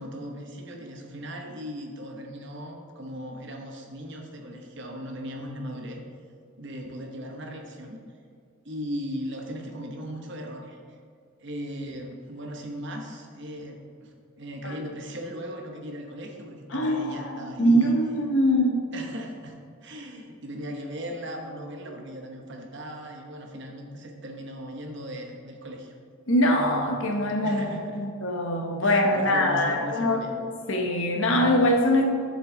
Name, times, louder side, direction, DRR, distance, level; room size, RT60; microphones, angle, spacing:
voice 1, 0.0-6.0 6.6-8.0 8.6-10.8 11.4-18.0 18.9-25.9 27.4-28.1 28.8-30.4, equal, 55° right, 2 dB, 1.0 m, -38 dB
voice 2, 16.7-17.3 17.6-18.9 26.3-32.1, equal, 65° left, 1 dB, 1.1 m, -23 dB
7.7 x 6.7 x 3.9 m, 2.2 s
head